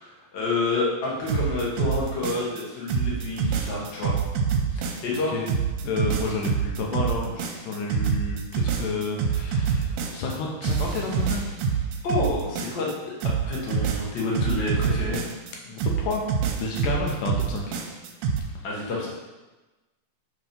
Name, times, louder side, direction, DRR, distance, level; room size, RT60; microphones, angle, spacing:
voice 1, 0.0-4.2 4.7-5.3 12.0-13.1 13.4-15.2 18.6-19.1, left 3 dB, 50° left, -4 dB, 1.4 m, -29 dB
sound 1, 1.3-2.6 2.9-5.2 5.5-10.4 10.6-12.9 13.2-15.5 15.8-18.4, right 6 dB, 75° right, 2.0 m, -26 dB
voice 2, 5.8-11.4 15.6-16.2 16.6-17.8, left 3 dB, 75° left, -1 dB, 2.2 m, -30 dB
5.9 x 4.5 x 5.2 m, 1.1 s
omnidirectional pair, 4.0 m